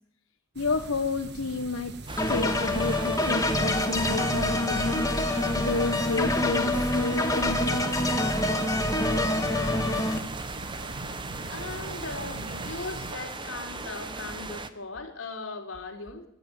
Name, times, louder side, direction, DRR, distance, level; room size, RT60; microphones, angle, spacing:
voice 1, 0.5-2.0 2.3-5.0 5.5-8.0, left 3 dB, 85° left, 6 dB, 1.2 m, -31 dB
sound 1, 0.6-13.1, right 2 dB, 50° right, 1.7 m, -41 dB
sound 2, 2.1-14.7, right 3 dB, 20° right, 1.2 m, -38 dB
sound 3, 2.2-10.2, left 1 dB, 15° left, 1.8 m, -26 dB
voice 2, 11.5-16.3, left 3 dB, 70° left, 3 dB, 3.8 m, -38 dB
22.0 x 14.0 x 9.3 m, 0.78 s
head